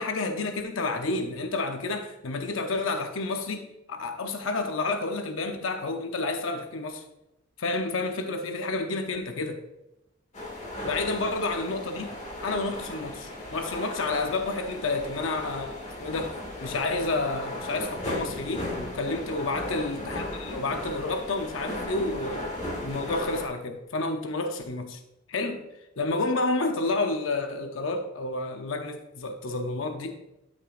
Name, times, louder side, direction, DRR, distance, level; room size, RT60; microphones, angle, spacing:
voice 1, 0.0-3.6 3.9-7.0 7.6-9.6 10.8-22.5 22.8-25.0 25.3-25.7 26.0-30.1, left 3 dB, 65° left, 5 dB, 0.8 m, -30 dB
sound 1, 10.3-23.5, left 1 dB, 35° left, 1.7 m, -36 dB
12.5 x 6.2 x 2.6 m, 0.91 s
head